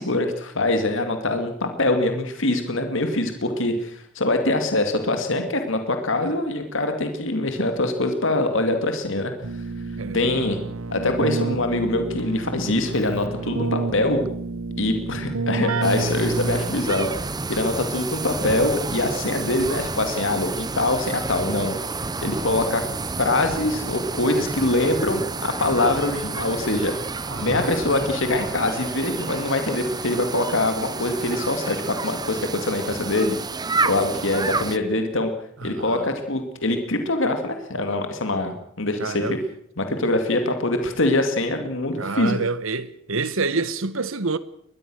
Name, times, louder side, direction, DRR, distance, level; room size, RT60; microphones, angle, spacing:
voice 1, 0.0-9.3 10.1-10.6 10.9-14.2 14.8-21.7 22.2-22.8 23.2-26.9 27.4-33.4 33.8-35.3 35.6-39.4 39.8-42.4, left 2 dB, 65° left, 2.5 m, -24 dB
Keyboard (musical), 9.4-17.0, right 3 dB, 90° right, 1.3 m, -29 dB
sound 1, 15.8-34.8, right 3 dB, 20° right, 0.7 m, -30 dB
voice 2, 27.2-27.9 35.6-36.1 39.0-39.4 42.0-44.4, right 3 dB, 70° right, 1.3 m, -27 dB
22.5 x 20.0 x 6.4 m
head